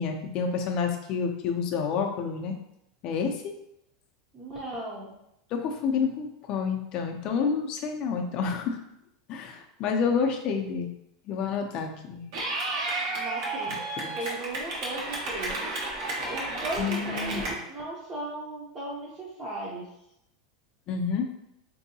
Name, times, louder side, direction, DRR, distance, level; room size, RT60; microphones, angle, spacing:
voice 1, 0.0-2.5 3.0-3.5 5.5-8.8 9.3-10.9 11.3-12.2 14.0-14.1 16.8-17.4 20.9-21.3, left 6 dB, 40° left, 3 dB, 0.5 m, -29 dB
voice 2, 4.3-5.1 13.1-15.8 16.3-19.8, right 2 dB, 15° right, -7 dB, 0.6 m, -37 dB
Clapping / Cheering, 12.3-17.5, right 2 dB, 65° right, 0.9 m, -32 dB
3.6 x 2.7 x 2.7 m, 0.80 s
supercardioid pair, 155°, 2 cm